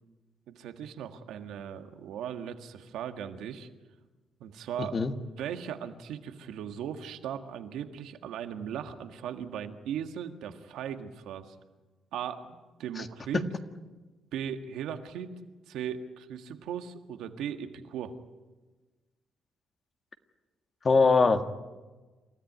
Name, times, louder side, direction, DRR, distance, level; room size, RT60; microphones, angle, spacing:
voice 1, 0.5-3.7 4.4-5.0 5.4-11.5 12.1-13.5 14.3-15.4 15.7-18.1, right 8 dB, 85° right, 7 dB, 1.7 m, -38 dB
voice 2, 4.8-5.1 13.0-13.1 20.8-21.5, left 4 dB, 35° left, 7 dB, 1.8 m, -22 dB
28.5 x 14.0 x 9.5 m, 1.2 s
cardioid pair, 90°, 0 cm